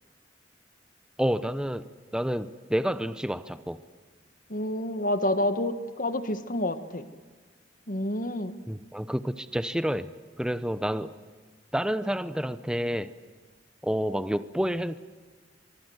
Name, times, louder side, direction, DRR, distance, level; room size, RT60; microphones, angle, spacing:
voice 1, 1.2-1.8 2.1-3.8 8.7-10.1 10.4-11.1 11.7-13.1 13.8-15.0, equal, 5° right, 12 dB, 0.7 m, -29 dB
voice 2, 4.5-7.1 7.9-8.6, left 1 dB, 45° left, 10 dB, 1.6 m, -28 dB
24.5 x 24.0 x 8.0 m, 1.5 s
head